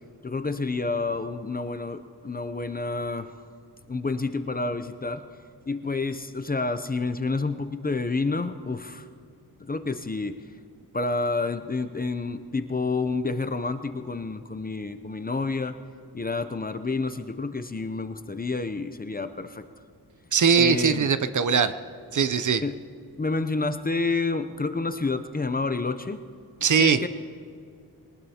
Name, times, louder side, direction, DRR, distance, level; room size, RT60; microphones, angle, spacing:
voice 1, 0.2-3.3 3.9-5.2 5.7-9.1 9.6-10.4 10.9-15.7 16.1-19.7 20.6-21.1 22.6-22.8 23.2-26.2 26.8-27.1, left 3 dB, 25° left, 10 dB, 0.5 m, -29 dB
voice 2, 20.3-21.7 22.1-22.6 26.6-27.0, right 6 dB, 50° right, 12 dB, 0.6 m, -21 dB
22.0 x 19.0 x 2.8 m, 2.2 s
wide cardioid pair, 135°, 39 cm